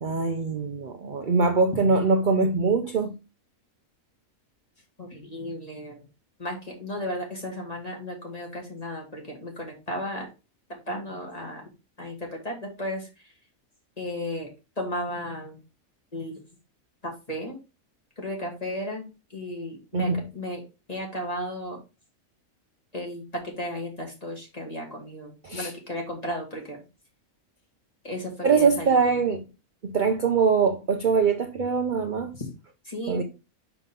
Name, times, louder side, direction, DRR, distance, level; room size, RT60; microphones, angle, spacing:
voice 1, 0.0-3.2 19.9-20.2 25.4-25.7 28.4-29.5 29.8-32.3 33.1-33.2, right 5 dB, 45° right, 0.7 m, -23 dB
voice 2, 5.0-6.1 6.4-10.3 10.7-11.6 12.0-13.3 14.0-14.5 14.8-15.6 16.1-16.4 17.0-17.6 18.2-20.6 20.9-21.8 22.9-23.2 23.6-26.8 28.0-29.0 32.4-32.5 32.8-33.2, left 1 dB, 30° left, 2.3 m, -34 dB
5.9 x 5.6 x 3.7 m
omnidirectional pair, 1.4 m